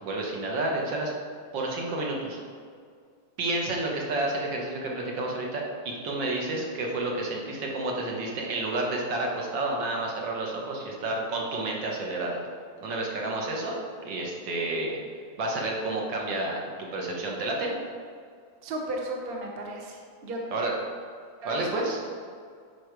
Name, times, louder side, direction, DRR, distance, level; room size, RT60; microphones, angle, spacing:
voice 1, 0.0-1.1 1.5-2.4 3.4-12.4 12.8-13.8 14.1-15.0 15.4-16.6 16.9-17.7 20.5-20.7 21.5-22.0, right 2 dB, 65° right, -1 dB, 1.8 m, -30 dB
voice 2, 18.6-20.4 21.4-22.1, right 1 dB, 40° right, 0 dB, 0.8 m, -35 dB
8.8 x 5.0 x 4.6 m, 2.1 s
omnidirectional pair, 2.2 m